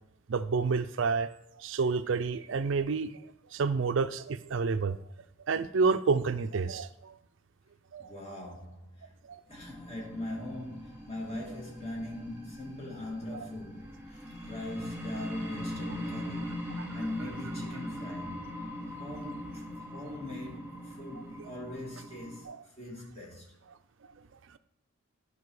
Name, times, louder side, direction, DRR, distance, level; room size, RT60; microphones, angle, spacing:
voice 1, 0.3-1.3 1.6-3.1 3.5-5.0 5.5-7.2 7.9-8.1 9.2-9.4 16.8-16.9 22.5-22.6, right 4 dB, 65° right, 0.4 m, -29 dB
voice 2, 8.0-9.1 9.5-18.4 19.0-23.6, left 1 dB, 30° left, 2.3 m, -41 dB
sound 1, 9.5-22.4, left 1 dB, 10° right, 2.3 m, -41 dB
10.5 x 5.0 x 4.8 m
head